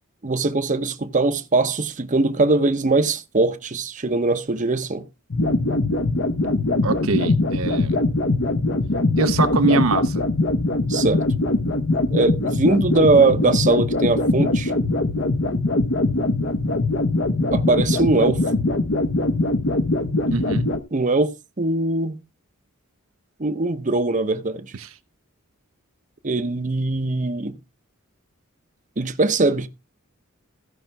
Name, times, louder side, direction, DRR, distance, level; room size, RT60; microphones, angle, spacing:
voice 1, 0.2-5.1 10.9-11.2 12.1-14.7 17.5-18.4 20.9-22.2 23.4-24.7 26.2-27.6 29.0-29.7, right 3 dB, 40° right, 0.8 m, -21 dB
sound 1, 5.3-20.8, left 2 dB, 60° left, 1.0 m, -22 dB
voice 2, 6.8-8.0 9.2-10.2 20.3-20.7, right 3 dB, 80° right, 0.8 m, -23 dB
16.0 x 5.8 x 3.4 m
head